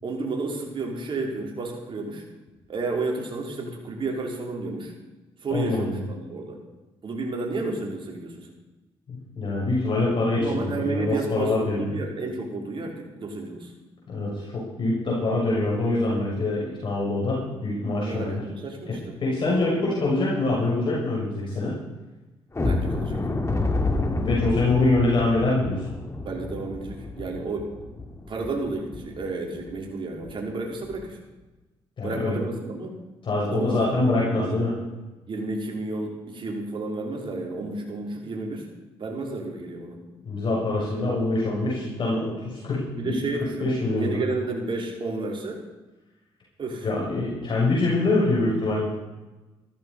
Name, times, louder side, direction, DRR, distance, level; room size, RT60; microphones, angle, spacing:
voice 1, 0.0-2.2 2.7-4.9 5.4-6.6 7.0-8.5 10.3-13.7 18.0-19.2 22.6-23.2 26.2-27.7 28.3-31.2 32.0-33.0 33.5-34.6 35.3-38.7 39.0-40.0 42.9-45.6 46.6-46.9, right 3 dB, 50° right, 0 dB, 4.5 m, -31 dB
voice 2, 5.5-6.0 9.1-11.9 14.1-18.4 18.9-19.0 19.2-21.7 24.2-25.8 32.0-32.4 33.2-34.7 40.2-43.1 43.6-44.2 46.8-48.9, left 2 dB, 50° left, -5 dB, 6.6 m, -24 dB
sound 1, 22.5-29.3 29.6-29.8 30.2-30.4 30.8-31.0, left 2 dB, 30° left, 2.6 m, -29 dB
16.0 x 14.0 x 5.5 m, 1.1 s
supercardioid pair, 65°, 10 cm